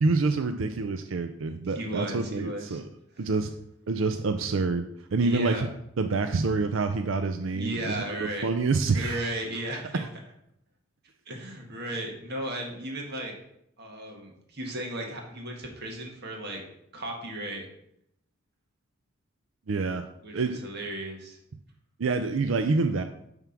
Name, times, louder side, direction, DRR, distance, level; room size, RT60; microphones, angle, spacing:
voice 1, 0.0-2.8 3.2-3.5 3.9-5.7 6.0-8.0 8.4-9.3 9.7-10.1 19.7-20.6 22.0-23.0, right 3 dB, 70° right, 8 dB, 0.5 m, -27 dB
voice 2, 1.6-2.8 3.1-3.3 5.2-5.7 7.5-8.5 8.9-10.0 11.3-13.3 13.8-16.7 16.9-17.7 20.2-21.4, right 1 dB, 55° right, 1 dB, 1.8 m, -35 dB
9.1 x 3.6 x 5.9 m, 0.75 s
head